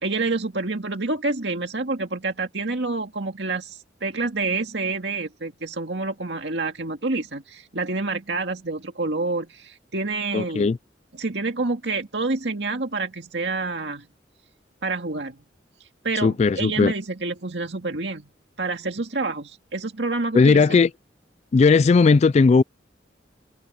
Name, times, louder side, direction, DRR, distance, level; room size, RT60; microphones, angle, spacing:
voice 1, 0.0-10.7 11.2-14.1 14.8-15.4 16.0-18.3 18.6-20.8, right 3 dB, 75° right, 2.1 m, -28 dB
voice 2, 10.3-10.8 16.2-16.9 20.3-20.9 21.5-22.6, left 4 dB, 40° left, 0.3 m, -17 dB
head